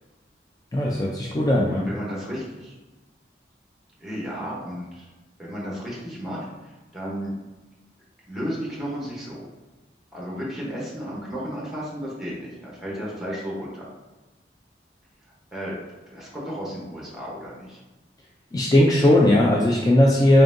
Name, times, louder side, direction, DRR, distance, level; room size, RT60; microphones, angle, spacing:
voice 1, 0.7-1.8 18.5-20.4, left 1 dB, 20° left, -3 dB, 0.3 m, -18 dB
voice 2, 1.6-2.7 4.0-5.1 5.4-7.3 8.3-9.5 10.1-13.9 15.5-15.8 16.1-17.8, equal, ahead, -5 dB, 0.9 m, -33 dB
3.8 x 3.4 x 2.6 m, 1.1 s
head